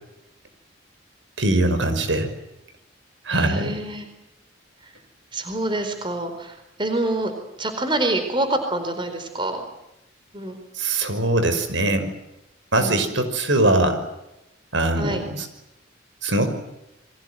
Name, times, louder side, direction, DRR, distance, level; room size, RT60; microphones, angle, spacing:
voice 1, 1.4-2.3 3.3-3.7 10.8-12.1 12.7-14.0 14.7-15.5 16.2-16.5, right 2 dB, 70° right, 9 dB, 5.7 m, -21 dB
voice 2, 3.3-4.0 4.8-4.9 5.3-7.3 7.6-9.6 10.3-10.6 12.8-13.1 15.0-15.2, right 1 dB, 25° right, 7 dB, 4.5 m, -26 dB
29.5 x 24.0 x 7.8 m, 0.89 s
head